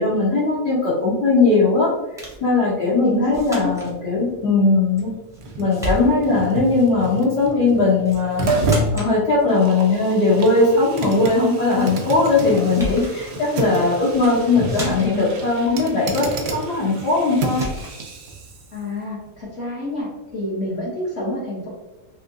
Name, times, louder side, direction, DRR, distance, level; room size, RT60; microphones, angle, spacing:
voice 1, 0.0-1.9 2.4-5.1 5.6-8.5 8.9-17.7, left 3 dB, 85° left, -9 dB, 1.5 m, -19 dB
sound 1, 2.2-2.5 3.3-3.9 5.0-5.4 5.7-6.4 8.0-8.3 8.6-9.1 12.2-12.3 12.6-13.2 14.1-14.4 14.7-15.3 17.0-17.1 17.5-18.0, equal, 5° right, 0.3 m, -32 dB
voice 2, 3.0-3.7 18.7-21.7, left 1 dB, 50° left, -6 dB, 1.0 m, -28 dB
sound 2, 3.1-17.8 18.3-18.4, right 2 dB, 85° right, 1.2 m, -30 dB
Liquid, 8.5-8.8 9.4-19.0 19.3-19.4, right 3 dB, 65° right, 0.7 m, -34 dB
3.5 x 2.8 x 2.5 m, 1.1 s
omnidirectional pair, 1.7 m